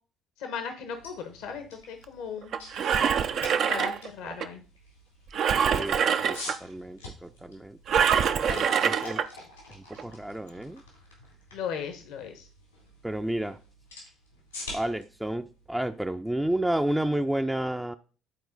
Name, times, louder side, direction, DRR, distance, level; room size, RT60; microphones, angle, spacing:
voice 1, 0.4-2.6 3.5-4.6 8.4-8.6 11.5-12.5, left 7 dB, 65° left, 1.1 m, -37 dB
sound 1, 0.8-16.8, left 1 dB, 90° left, 2.9 m, -47 dB
Engine, 2.5-4.5 5.3-6.6 7.9-9.3 9.9-10.0, right 7 dB, 55° right, 0.6 m, -25 dB
voice 2, 5.5-8.0 8.5-9.2 9.8-10.8 13.0-13.6 14.7-17.9, right 1 dB, 10° right, 0.5 m, -31 dB
10.5 x 4.3 x 4.0 m
figure-of-eight pair, 50°, 0 cm